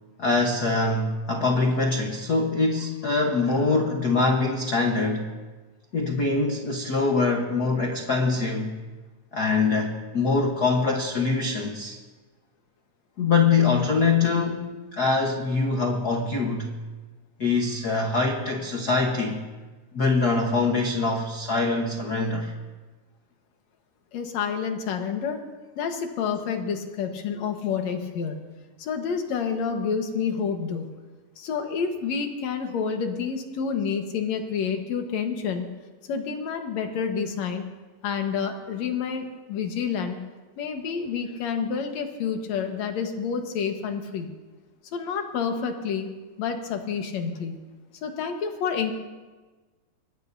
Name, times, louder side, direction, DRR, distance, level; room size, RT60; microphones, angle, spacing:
voice 1, 0.2-5.3 5.9-8.7 9.3-12.0 13.2-16.7 17.4-19.4 19.9-22.5, left 3 dB, 80° left, 2 dB, 0.8 m, -24 dB
voice 2, 24.1-25.4 25.8-28.4 28.8-30.9 31.4-35.7 36.1-37.6 38.0-40.2 40.6-44.3 44.9-46.1 46.4-47.5 48.0-48.9, left 6 dB, 65° left, 5 dB, 2.4 m, -29 dB
24.5 x 19.5 x 2.7 m, 1.3 s
omnidirectional pair, 3.7 m